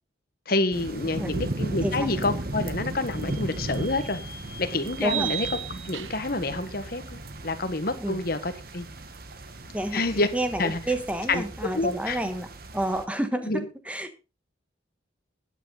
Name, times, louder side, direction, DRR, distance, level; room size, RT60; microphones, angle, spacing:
voice 1, 0.5-4.2 4.6-5.5 5.8-8.9 9.9-10.3 10.6-10.8 11.3-12.2 13.5-13.6, left 2 dB, 50° left, 1.3 m, -28 dB
sound 1, 0.7-13.0, right 1 dB, 50° right, 1.2 m, -36 dB
Vehicle / Squeak, 1.9-7.2, right 3 dB, 25° left, 4.4 m, -47 dB
sound 2, 3.3-3.4 5.0-6.4, right 12 dB, 90° right, 0.9 m, -33 dB
voice 2, 5.0-5.3 8.0-8.2 9.7-10.0 10.3-12.5 12.7-14.2, right 1 dB, 5° right, 1.3 m, -29 dB
12.5 x 9.4 x 3.9 m
head